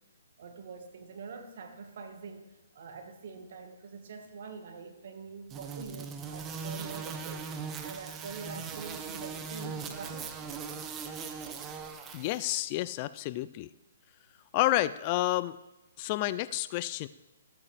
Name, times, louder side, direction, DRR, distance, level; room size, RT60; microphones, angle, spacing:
voice 1, 0.4-10.4, right 5 dB, 55° right, 5 dB, 1.5 m, -45 dB
sound 1, 5.5-12.6, right 5 dB, 20° right, 0.7 m, -40 dB
voice 2, 12.1-13.7 14.5-15.6 16.0-17.1, left 16 dB, 35° left, 16 dB, 0.3 m, -30 dB
14.5 x 8.7 x 3.3 m, 1.0 s
hypercardioid pair, 135°, 0 cm